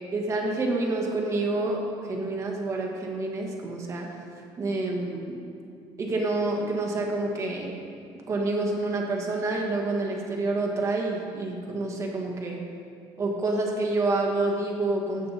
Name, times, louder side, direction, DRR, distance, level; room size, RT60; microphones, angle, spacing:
voice 1, 0.1-4.1 4.6-5.4 6.0-7.7 8.3-12.6 13.2-15.3, right 2 dB, 30° right, 0 dB, 1.5 m, -28 dB
15.5 x 6.8 x 4.0 m, 2.3 s
cardioid pair, 150°, 10 cm